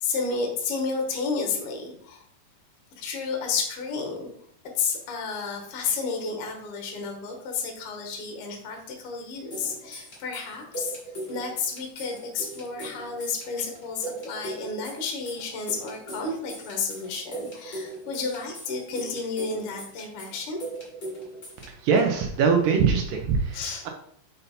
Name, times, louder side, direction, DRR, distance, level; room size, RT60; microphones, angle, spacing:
voice 1, 0.0-2.2 3.0-4.3 4.8-11.0 11.3-20.6 23.5-23.8, left 4 dB, 70° left, 2 dB, 1.3 m, -31 dB
sound 1, 9.5-21.6, right 2 dB, 55° left, 0.6 m, -39 dB
voice 2, 21.6-23.9, right 5 dB, 80° right, 3 dB, 1.9 m, -23 dB
5.5 x 5.3 x 4.2 m, 0.65 s
omnidirectional pair, 4.7 m